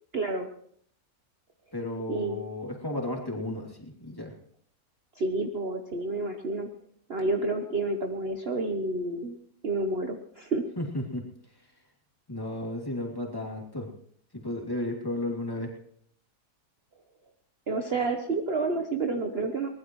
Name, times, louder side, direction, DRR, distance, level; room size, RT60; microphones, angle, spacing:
voice 1, 0.1-0.5 2.1-2.4 5.1-6.7 7.1-9.3 9.6-10.6 17.7-19.7, right 3 dB, 40° right, 4 dB, 1.2 m, -29 dB
voice 2, 1.7-4.3 10.8-11.7 12.3-13.9 14.3-15.7, left 1 dB, 15° left, -1 dB, 2.9 m, -34 dB
22.5 x 19.5 x 3.2 m, 0.64 s
omnidirectional pair, 1.7 m